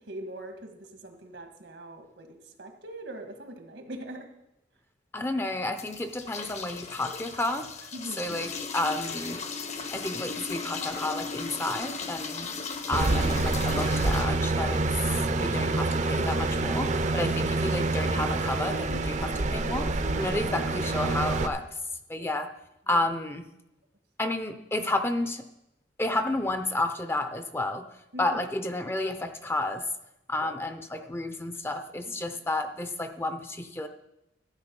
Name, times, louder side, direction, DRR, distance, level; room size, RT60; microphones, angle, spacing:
voice 1, 0.1-2.3 2.6-4.3 7.9-8.4 22.2-22.3 28.1-28.4 30.4-30.5 31.0-31.1 32.1-32.2, right 1 dB, 80° right, 5 dB, 1.7 m, -42 dB
voice 2, 5.1-7.7 8.2-9.4 9.9-12.5 12.9-14.9 15.3-21.7 22.1-22.5 22.9-23.5 24.2-25.4 26.0-27.9 28.2-29.8 30.3-33.9, left 2 dB, 15° left, 8 dB, 0.6 m, -31 dB
sound 1, 5.8-14.3, left 5 dB, 40° left, 0.9 m, -36 dB
sound 2, 12.9-21.5, right 2 dB, 45° right, 0.7 m, -27 dB
13.0 x 7.6 x 5.3 m, 0.87 s
head